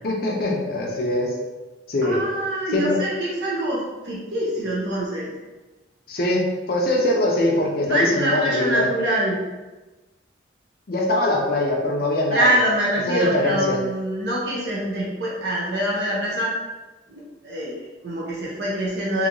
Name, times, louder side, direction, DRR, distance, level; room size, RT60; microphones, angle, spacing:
voice 1, 0.0-1.3 1.9-2.2 2.7-3.0 6.1-8.9 10.9-12.5 13.1-13.8, left 1 dB, 55° left, -1 dB, 0.5 m, -22 dB
voice 2, 2.0-5.3 7.8-9.4 12.3-16.5 17.1-19.3, right 1 dB, 65° right, -6 dB, 0.7 m, -25 dB
2.9 x 2.7 x 2.6 m, 1.2 s
head